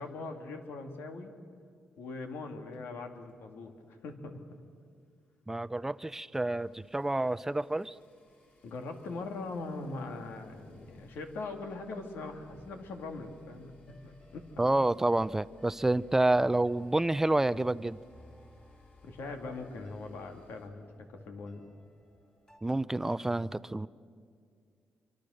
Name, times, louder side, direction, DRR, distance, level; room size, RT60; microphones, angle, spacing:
voice 1, 0.0-1.4 2.0-4.4 8.6-14.5 19.0-21.7, left 3 dB, 80° left, 4 dB, 2.6 m, -41 dB
sound 1, 2.0-3.8 4.1-4.3 4.6-4.7 4.9-20.7, left 2 dB, 45° left, 4.4 m, -63 dB
voice 2, 5.5-8.0 14.6-18.0 22.6-23.9, right 2 dB, 10° right, 17 dB, 0.5 m, -28 dB
sound 2, 12.4-22.6, left 1 dB, 20° left, 4.2 m, -62 dB
26.0 x 24.0 x 6.5 m, 2.2 s
cardioid pair, 100°, 4 cm